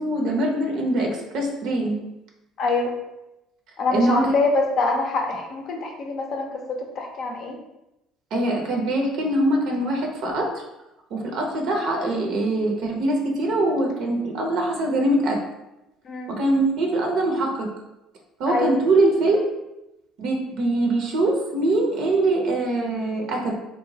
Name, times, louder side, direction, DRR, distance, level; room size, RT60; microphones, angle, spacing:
voice 1, 0.0-2.0 3.9-4.3 8.3-10.6 11.1-15.4 16.3-17.7 18.4-19.5 20.2-23.5, right 2 dB, 60° right, 1 dB, 0.5 m, -23 dB
voice 2, 2.6-3.0 3.8-7.6 16.0-16.3 18.5-18.7, left 3 dB, 55° left, 2 dB, 0.5 m, -25 dB
2.9 x 2.1 x 2.7 m, 0.92 s
hypercardioid pair, 60°, 0 cm